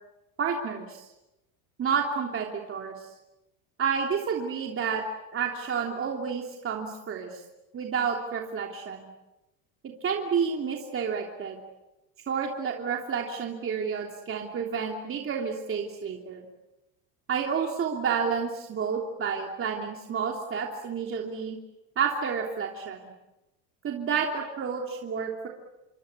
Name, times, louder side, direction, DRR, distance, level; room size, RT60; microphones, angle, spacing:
voice 1, 0.4-1.0 1.8-3.1 3.8-5.0 5.3-7.4 7.7-9.1 10.0-11.6 12.3-16.4 17.3-21.6 22.0-23.0 23.8-25.5, right 6 dB, 30° right, 1 dB, 3.2 m, -30 dB
28.0 x 23.5 x 8.4 m, 1.0 s
supercardioid pair, 115°, 41 cm